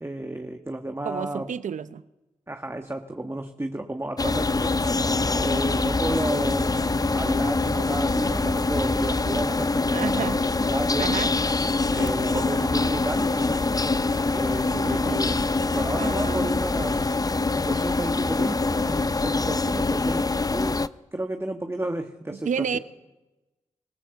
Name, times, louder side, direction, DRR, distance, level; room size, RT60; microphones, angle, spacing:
voice 1, 0.0-1.5 2.5-4.8 5.3-6.8 7.1-11.2 11.9-13.6 14.3-15.4 15.7-17.2 17.5-20.8 21.1-22.8, right 1 dB, 20° right, 1.7 m, -32 dB
voice 2, 1.0-2.0 9.9-10.7 11.0-11.3 16.0-16.5 22.3-22.8, right 7 dB, 75° right, 0.9 m, -30 dB
sound 1, 4.2-20.9, left 3 dB, 30° left, 0.7 m, -24 dB
sound 2, 4.2-9.5, equal, ahead, 4.4 m, -34 dB
sound 3, 10.5-18.2, right 4 dB, 55° right, 2.3 m, -44 dB
26.0 x 16.0 x 7.2 m
supercardioid pair, 40°, 13 cm